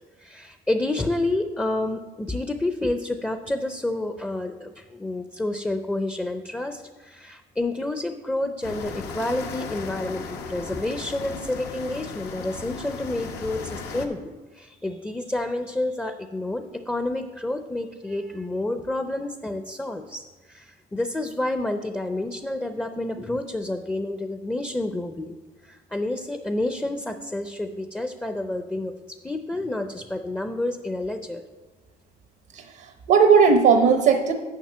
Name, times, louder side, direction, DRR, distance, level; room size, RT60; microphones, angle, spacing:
voice 1, 0.2-14.2 14.5-25.4 25.6-31.4, left 2 dB, 10° left, 7 dB, 0.5 m, -29 dB
sound 1, 8.6-14.1, left 5 dB, 85° left, 1.0 m, -36 dB
voice 2, 32.5-34.3, right 5 dB, 75° right, 6 dB, 0.8 m, -17 dB
7.3 x 5.4 x 7.3 m, 1.3 s
cardioid pair, 110°, 17 cm